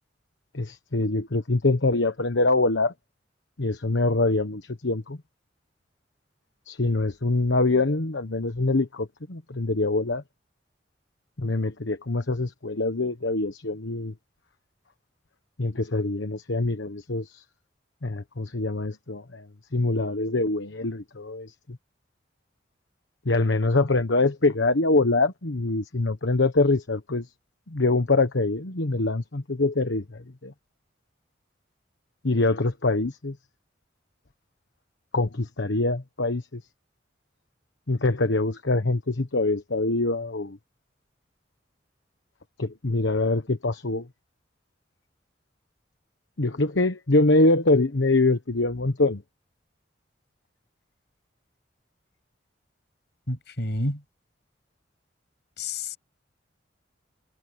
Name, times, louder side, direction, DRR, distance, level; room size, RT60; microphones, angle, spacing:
voice 1, 0.5-2.9 3.6-5.2 6.7-10.2 11.4-14.1 15.6-17.4 18.0-19.5 19.7-21.5 23.2-27.3 27.7-30.5 32.2-33.4 35.1-36.6 37.9-40.6 42.6-44.1 46.4-49.2, left 2 dB, 80° left, 1.2 m, -24 dB
voice 2, 53.3-54.0 55.6-56.0, left 1 dB, 65° left, 7.0 m, -29 dB
head